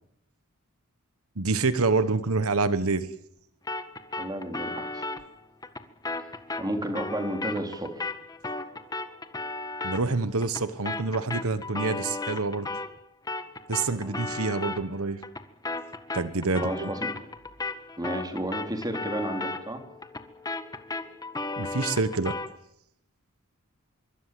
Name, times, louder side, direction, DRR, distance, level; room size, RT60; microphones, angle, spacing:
voice 1, 1.4-3.1 9.8-12.7 13.7-15.2 16.1-16.9 21.6-22.4, right 3 dB, 80° right, 14 dB, 1.3 m, -27 dB
sound 1, 3.7-13.0 13.3-22.6, left 3 dB, 15° left, 1.7 m, -35 dB
voice 2, 4.1-5.1 6.3-8.1 13.9-14.2 16.5-17.1 18.0-19.8, right 1 dB, 20° right, 5 dB, 3.8 m, -32 dB
25.5 x 23.5 x 7.7 m, 0.73 s
head